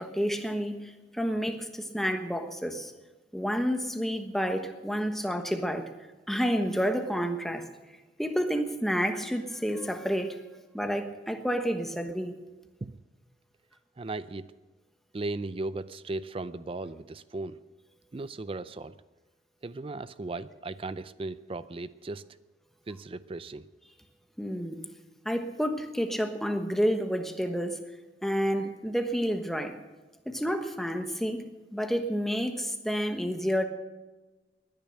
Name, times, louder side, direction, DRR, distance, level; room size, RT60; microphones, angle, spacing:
voice 1, 0.0-2.9 3.3-5.9 6.3-7.7 8.2-10.4 10.7-12.3 24.4-24.8 25.2-27.8 28.2-29.7 30.3-31.4 31.7-33.6, equal, ahead, 6 dB, 1.2 m, -29 dB
voice 2, 14.0-14.5 15.1-17.6 18.1-18.9 19.6-22.2 22.9-23.7, right 2 dB, 30° right, 15 dB, 0.4 m, -36 dB
19.5 x 10.5 x 6.6 m, 1.2 s
head